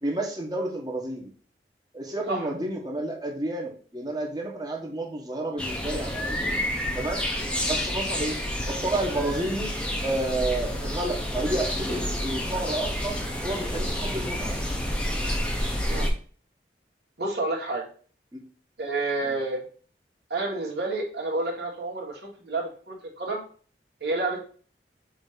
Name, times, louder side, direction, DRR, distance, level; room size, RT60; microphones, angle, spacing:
voice 1, 0.0-1.2 1.9-6.4 6.9-7.2 7.6-8.4 8.6-9.7 10.0-13.2 13.4-14.5 18.3-18.4 19.2-19.4, right 2 dB, 25° right, 0 dB, 1.5 m, -30 dB
volubilis nature birds, 5.6-16.1, equal, 5° left, 1.0 m, -29 dB
voice 2, 17.2-17.8 18.8-19.6 20.3-23.4 24.0-24.4, right 2 dB, 70° right, -2 dB, 2.3 m, -29 dB
7.2 x 3.0 x 5.1 m, 0.42 s
head